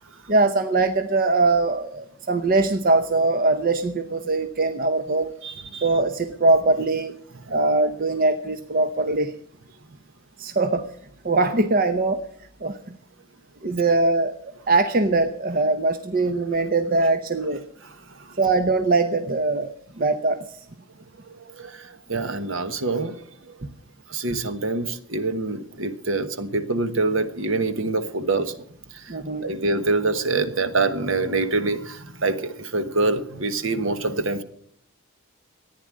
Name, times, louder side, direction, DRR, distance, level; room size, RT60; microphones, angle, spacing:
voice 1, 0.3-5.3 5.8-7.1 7.5-9.4 10.4-10.9 11.2-12.3 12.6-13.0 13.6-17.6 18.4-20.5 23.6-23.7 29.1-29.5, right 3 dB, 40° right, 9 dB, 0.7 m, -22 dB
voice 2, 5.4-5.9 7.3-7.6 17.8-18.4 21.5-23.6 24.1-28.5 28.9-34.4, right 3 dB, 60° right, 10 dB, 1.2 m, -26 dB
14.5 x 9.7 x 7.4 m, 0.67 s
head